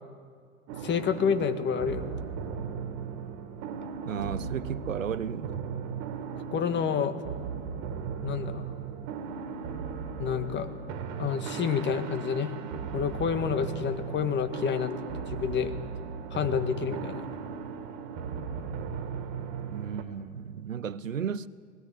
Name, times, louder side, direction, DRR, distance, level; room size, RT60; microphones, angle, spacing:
sound 1, 0.7-20.0, right 6 dB, 45° right, 2.2 m, -37 dB
voice 1, 0.8-2.0 6.5-7.2 8.2-8.6 10.2-10.7 11.2-12.5 12.9-15.0 15.3-15.7 16.3-17.3, left 7 dB, 30° left, 1.6 m, -28 dB
voice 2, 4.0-5.6 19.6-21.5, right 7 dB, 90° right, 0.7 m, -34 dB
20.0 x 16.5 x 8.3 m
hypercardioid pair, 90°, 38 cm